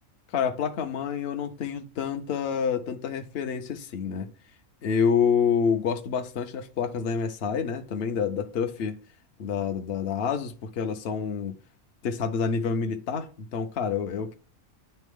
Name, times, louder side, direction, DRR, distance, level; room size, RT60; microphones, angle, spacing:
voice 1, 0.3-4.3 4.8-9.0 9.4-11.6 12.0-14.4, left 6 dB, 60° left, 0.8 m, -28 dB
9.1 x 3.3 x 3.6 m
omnidirectional pair, 1.4 m